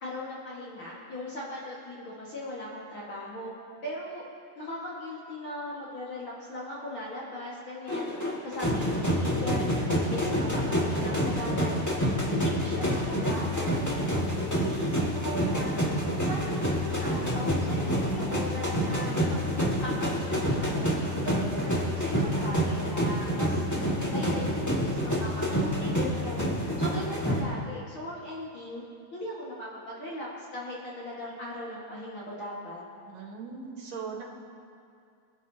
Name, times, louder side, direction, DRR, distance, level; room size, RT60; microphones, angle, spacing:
voice 1, 0.0-3.5 3.8-4.3 4.6-8.1 8.4-9.7 10.1-11.8 12.3-14.0 14.6-15.8 16.2-19.4 19.8-20.9 21.2-23.6 24.1-28.8 29.1-32.8, left 1 dB, 45° left, -6 dB, 1.9 m, -38 dB
sound 1, 7.9-27.4, equal, 20° left, 0.4 m, -28 dB
voice 2, 33.0-34.2, right 5 dB, 70° right, -5 dB, 3.4 m, -39 dB
26.0 x 10.5 x 2.8 m, 2.3 s
omnidirectional pair, 4.1 m